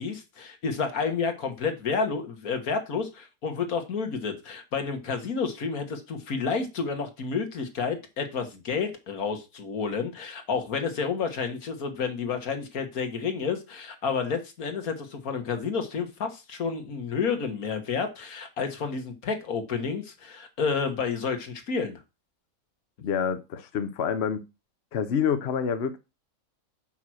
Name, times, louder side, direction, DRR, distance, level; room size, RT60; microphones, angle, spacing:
voice 1, 0.0-22.0, left 5 dB, 80° left, 1.9 m, -30 dB
voice 2, 23.0-24.4 24.9-26.0, left 7 dB, 50° left, 1.0 m, -27 dB
5.8 x 5.7 x 6.2 m
omnidirectional pair, 1.5 m